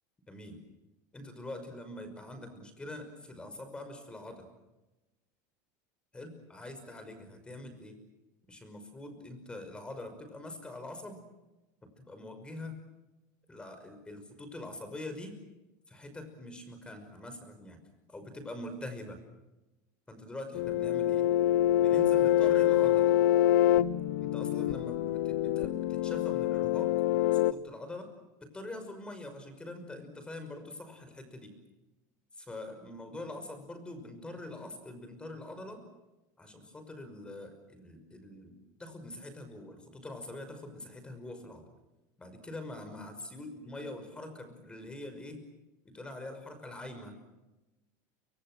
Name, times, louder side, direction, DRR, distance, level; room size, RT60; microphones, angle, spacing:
voice 1, 0.3-0.6 1.1-4.4 6.1-8.0 8.5-11.2 12.0-12.7 13.5-15.4 15.9-17.8 18.1-19.2 20.1-21.3 21.8-23.1 24.2-28.1 28.4-31.5 32.3-35.8 36.4-41.7 42.2-45.4 45.8-47.2, left 1 dB, 10° left, 8 dB, 5.7 m, -44 dB
sound 1, 20.5-27.5, left 12 dB, 75° left, 1.1 m, -26 dB
29.0 x 25.5 x 6.4 m, 1.0 s
supercardioid pair, 150°, 9 cm